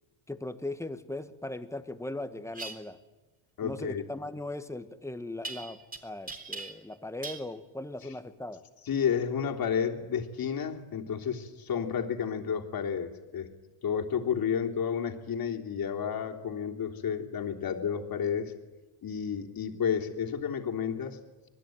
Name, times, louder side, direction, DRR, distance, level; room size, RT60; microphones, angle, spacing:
voice 1, 0.3-3.0 3.6-8.6, left 2 dB, 5° left, 10 dB, 1.7 m, -38 dB
sound 1, 2.5-2.7 5.4-6.0 6.3-6.9 7.2-7.5, right 3 dB, 15° right, 3.7 m, -39 dB
voice 2, 3.6-4.0 8.8-13.5 13.8-18.5 19.0-21.2, left 7 dB, 45° left, 2 dB, 3.4 m, -31 dB
26.0 x 20.5 x 9.4 m, 1.2 s
cardioid pair, 115°, 48 cm